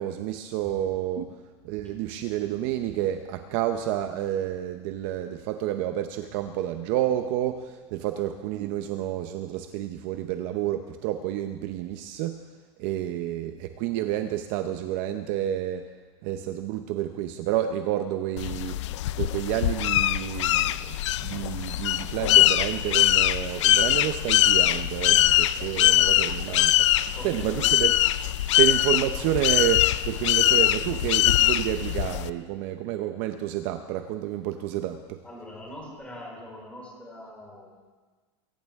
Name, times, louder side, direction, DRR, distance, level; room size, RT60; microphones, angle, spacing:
voice 1, 0.0-1.3 1.6-12.4 12.8-15.9 16.2-18.8 19.2-27.9 28.6-35.2, right 12 dB, 40° right, 7 dB, 0.8 m, -29 dB
sound 1, 18.4-32.3, left 14 dB, 75° left, 0.6 m, -22 dB
voice 2, 27.1-27.9 28.5-28.7 35.2-38.0, left 1 dB, 10° left, -3 dB, 4.8 m, -44 dB
22.0 x 17.5 x 3.6 m, 1.4 s
supercardioid pair, 165°, 16 cm